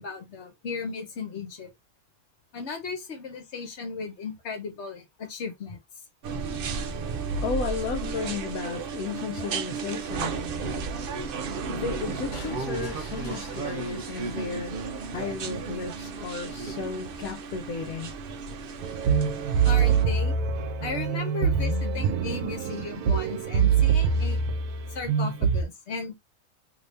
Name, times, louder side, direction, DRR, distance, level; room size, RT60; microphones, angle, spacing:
voice 1, 0.0-1.7 2.5-5.8 19.6-20.4 20.8-24.4 24.9-26.1, left 5 dB, 55° left, 1.3 m, -36 dB
sound 1, 6.2-20.0, right 4 dB, 60° right, 0.6 m, -34 dB
voice 2, 7.4-10.4 11.7-14.8 15.1-18.1, left 5 dB, 75° left, 1.0 m, -34 dB
sound 2, 12.3-15.3, left 2 dB, 35° left, 1.1 m, -46 dB
sound 3, 18.8-25.6, right 6 dB, 75° right, 1.1 m, -24 dB
3.0 x 2.6 x 3.3 m
omnidirectional pair, 1.5 m